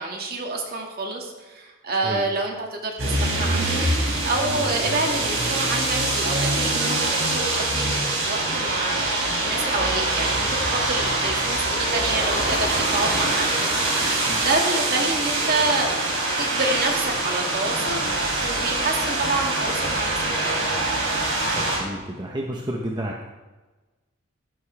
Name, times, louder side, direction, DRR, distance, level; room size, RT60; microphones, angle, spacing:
voice 1, 0.0-16.0 16.4-20.6, right 3 dB, 45° right, 1 dB, 2.1 m, -28 dB
sound 1, 3.0-21.8, right 2 dB, 65° right, 3.9 m, -24 dB
voice 2, 21.5-23.2, right 1 dB, 20° right, -1 dB, 0.9 m, -31 dB
14.5 x 11.0 x 3.4 m, 1.2 s
head